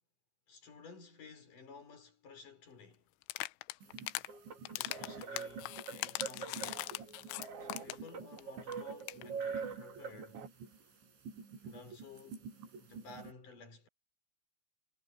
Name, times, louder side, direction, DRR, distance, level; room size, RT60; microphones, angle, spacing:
voice 1, 0.5-3.1 4.7-6.9 7.6-10.5 11.6-12.5 12.8-13.9, left 4 dB, 45° left, 6.1 m, -54 dB
sound 1, 3.2-4.3 4.7-8.1 8.4-8.5 8.7-8.8 9.0-9.2, left 19 dB, 90° left, 3.1 m, -41 dB
Gas heating, 3.8-13.3, right 5 dB, 75° right, 7.9 m, -51 dB
sound 2, 4.3-10.5, right 6 dB, 45° right, 2.0 m, -44 dB
omnidirectional pair, 5.4 m